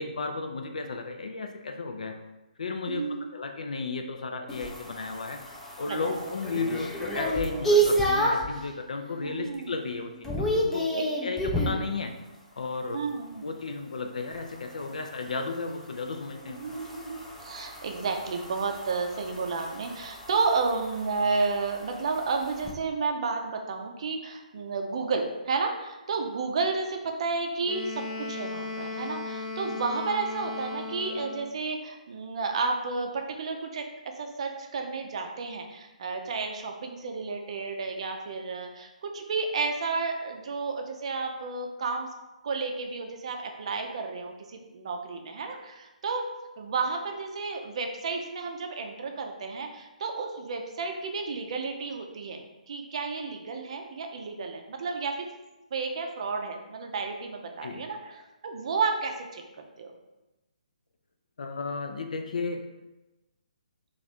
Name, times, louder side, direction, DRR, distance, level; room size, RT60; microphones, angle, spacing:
voice 1, 0.0-2.2 2.6-5.4 5.8-10.9 11.2-12.1 12.6-13.0 13.4-16.6 57.6-57.8 61.4-62.6, left 4 dB, 65° left, 5 dB, 0.5 m, -34 dB
voice 2, 2.9-3.3 5.9-6.2 9.2-9.7 10.9-11.1 12.9-13.4 16.6-42.1 42.4-46.3 46.6-55.3 55.7-59.4 59.8-59.9, right 4 dB, 50° right, 3 dB, 0.5 m, -32 dB
sound 1, 4.5-8.5 9.0-9.5 9.7-11.8 14.3-22.7, right 1 dB, 5° left, 0.5 m, -31 dB
Wind instrument woodwind instrument, 27.6-31.6, left 3 dB, 40° left, 0.9 m, -36 dB
3.2 x 2.5 x 4.1 m, 1.0 s
figure-of-eight pair, 135°, 4 cm